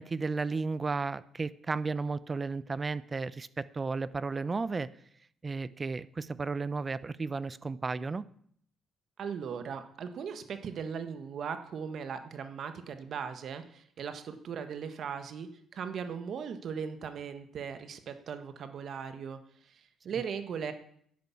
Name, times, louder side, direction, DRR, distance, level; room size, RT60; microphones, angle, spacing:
voice 1, 0.0-4.9 5.4-8.2, right 4 dB, 30° right, 17 dB, 0.7 m, -33 dB
voice 2, 9.2-20.7, right 7 dB, 65° right, 9 dB, 1.6 m, -38 dB
10.5 x 10.0 x 8.6 m, 0.65 s
cardioid pair, 90°, 0 cm